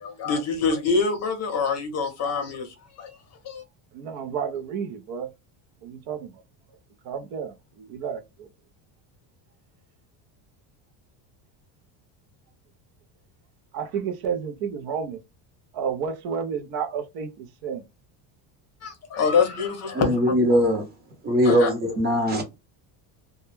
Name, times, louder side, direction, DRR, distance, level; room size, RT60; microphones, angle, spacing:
voice 1, 0.0-2.7 3.0-3.1 3.4-3.6 18.8-20.1 21.4-21.7, left 5 dB, 35° left, 0.6 m, -25 dB
voice 2, 3.9-5.3 5.8-6.3 7.1-8.5 13.7-15.2 15.7-17.8, right 7 dB, 55° right, 0.5 m, -31 dB
voice 3, 19.9-20.8 21.2-22.4, equal, 20° right, 0.7 m, -21 dB
2.2 x 2.1 x 3.1 m
cardioid pair, 150°, 45 cm